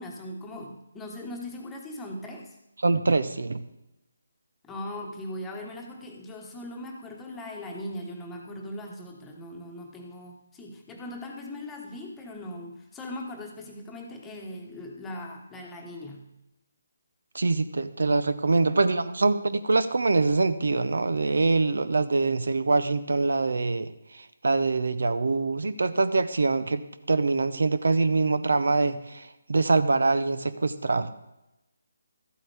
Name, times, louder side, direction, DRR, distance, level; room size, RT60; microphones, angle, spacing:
voice 1, 0.0-2.6 4.6-16.3, left 1 dB, 10° left, 0 dB, 1.2 m, -39 dB
voice 2, 2.8-3.6 17.3-23.9 24.1-31.1, right 3 dB, 70° right, 13 dB, 0.7 m, -24 dB
13.0 x 8.2 x 3.4 m, 0.92 s
figure-of-eight pair, 155°, 0 cm